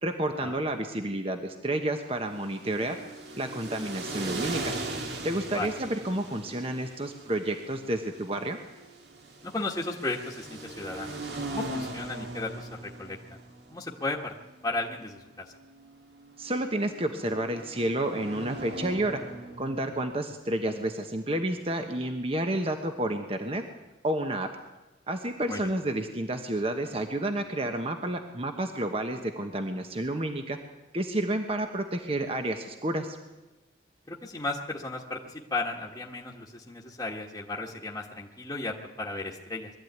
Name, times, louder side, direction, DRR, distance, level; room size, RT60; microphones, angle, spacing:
voice 1, 0.0-3.0 3.4-4.7 5.2-8.6 16.4-19.2 19.6-23.6 24.0-24.5 25.1-30.6 30.9-33.2, right 1 dB, 35° right, 5 dB, 1.2 m, -30 dB
sound 1, 2.2-20.1, right 2 dB, 65° right, 2.3 m, -40 dB
voice 2, 9.4-11.2 11.5-13.4 13.7-14.3 14.6-15.5 25.5-25.6 34.1-39.7, left 2 dB, 20° left, -3 dB, 1.5 m, -35 dB
22.0 x 13.5 x 9.5 m, 1.1 s
head